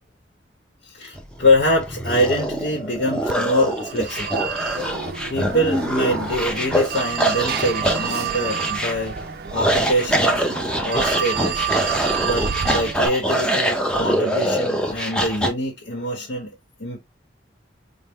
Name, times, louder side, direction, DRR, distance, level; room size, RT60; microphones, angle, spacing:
voice 1, 0.9-4.5 5.3-9.2 9.5-10.5 10.8-11.7 12.2-17.0, left 1 dB, 75° left, 1.0 m, -24 dB
sound 1, 1.2-15.5, right 1 dB, 5° left, 0.6 m, -24 dB
Telephone, 3.3-13.1, right 8 dB, 60° right, 0.4 m, -29 dB
4.1 x 2.1 x 3.4 m
head